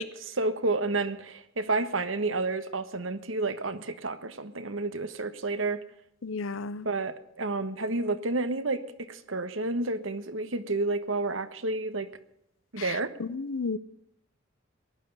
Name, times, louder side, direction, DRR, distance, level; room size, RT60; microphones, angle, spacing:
voice 1, 0.0-5.8 6.8-12.1 12.7-13.1, right 3 dB, 75° right, 1.4 m, -30 dB
voice 2, 6.2-6.9 12.8-12.9 13.2-13.8, left 4 dB, 75° left, 0.7 m, -32 dB
18.5 x 12.0 x 5.5 m
head